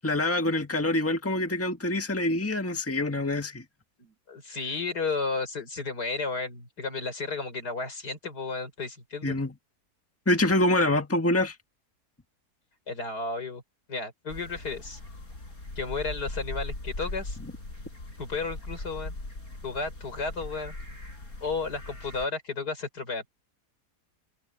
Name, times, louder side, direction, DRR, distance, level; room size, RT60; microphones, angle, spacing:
voice 1, 0.0-3.6 9.2-9.5 10.3-11.5, left 1 dB, 10° left, 1.5 m, -25 dB
voice 2, 4.0-9.4 12.9-13.6 13.9-15.0 15.8-17.4 18.2-19.1 19.6-20.7 21.4-23.2, left 4 dB, 85° left, 5.5 m, -33 dB
sound 1, 14.3-22.3, left 2 dB, 65° left, 6.6 m, -39 dB
omnidirectional pair, 1.7 m